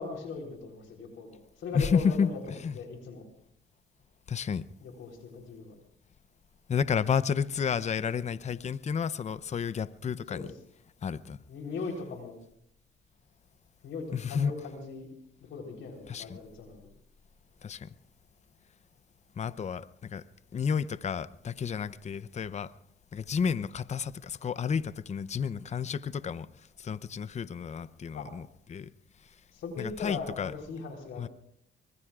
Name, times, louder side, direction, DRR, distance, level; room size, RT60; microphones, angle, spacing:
voice 1, 0.0-3.2 4.8-5.7 10.3-10.5 11.5-12.4 13.8-15.1 15.4-16.9 28.1-28.3 29.5-31.3, left 4 dB, 75° left, 2 dB, 3.9 m, -39 dB
voice 2, 1.7-2.7 4.3-4.6 6.7-10.5 11.0-11.4 14.1-14.5 16.1-16.4 17.6-17.9 19.4-20.2 20.5-22.7 23.1-26.5 26.8-28.9 29.8-30.5 31.2-31.3, left 6 dB, 35° left, 16 dB, 0.6 m, -31 dB
24.5 x 21.5 x 2.4 m, 0.69 s
cardioid pair, 90°, 20 cm